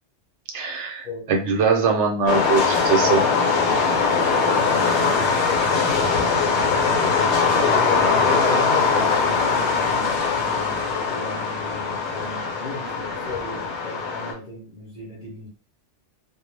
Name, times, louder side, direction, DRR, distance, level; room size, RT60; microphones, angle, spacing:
voice 1, 0.5-3.2, right 5 dB, 80° right, 3 dB, 0.9 m, -22 dB
sound 1, 2.3-14.3, left 5 dB, 70° left, 0.9 m, -21 dB
voice 2, 4.9-15.5, left 2 dB, 45° left, -3 dB, 0.7 m, -35 dB
2.2 x 2.0 x 3.1 m, 0.38 s
omnidirectional pair, 1.2 m